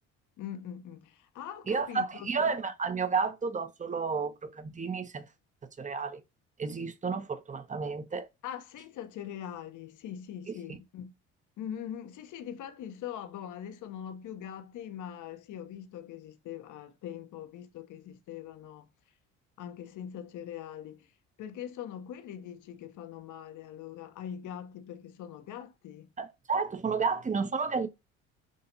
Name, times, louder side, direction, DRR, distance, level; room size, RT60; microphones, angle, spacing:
voice 1, 0.4-2.3 8.4-11.1 11.6-18.9 19.6-21.1 21.4-26.1, left 9 dB, 60° left, 0.9 m, -42 dB
voice 2, 1.7-5.3 5.8-6.2 6.6-8.3 26.2-27.9, right 5 dB, 20° right, 0.7 m, -31 dB
6.3 x 2.8 x 2.7 m
hypercardioid pair, 65°, 35 cm